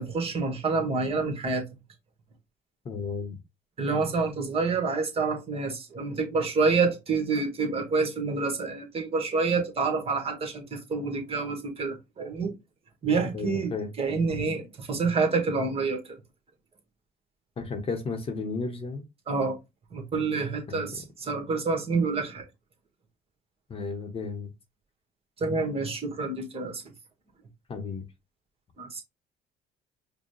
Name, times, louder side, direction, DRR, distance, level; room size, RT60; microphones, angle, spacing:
voice 1, 0.0-1.6 3.8-12.5 13.0-13.7 14.0-16.0 19.3-19.6 19.9-22.4 25.4-26.8 28.8-29.0, right 4 dB, 35° right, 1.5 m, -28 dB
voice 2, 2.8-3.4 13.3-13.9 17.6-19.0 20.7-20.9 23.7-24.5 27.7-28.0, left 4 dB, 35° left, 0.9 m, -33 dB
4.9 x 2.2 x 3.2 m
cardioid pair, 110°, 17 cm